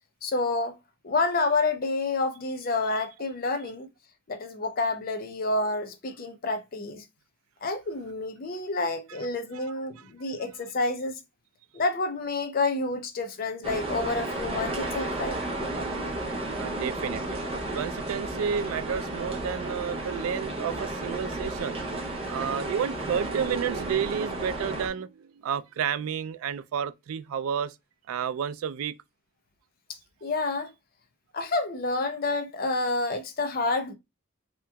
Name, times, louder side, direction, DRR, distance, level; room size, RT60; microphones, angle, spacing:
voice 1, 0.2-0.8 1.0-3.9 4.3-7.0 7.6-11.2 11.7-15.4 30.2-30.7 31.3-33.9, left 3 dB, 45° left, 0.4 m, -29 dB
sound 1, 13.6-24.9, right 2 dB, 25° right, 0.6 m, -33 dB
voice 2, 16.6-17.4 17.7-21.8 22.3-27.7 28.1-28.9, right 7 dB, 85° right, 0.3 m, -31 dB
3.4 x 2.9 x 2.2 m
head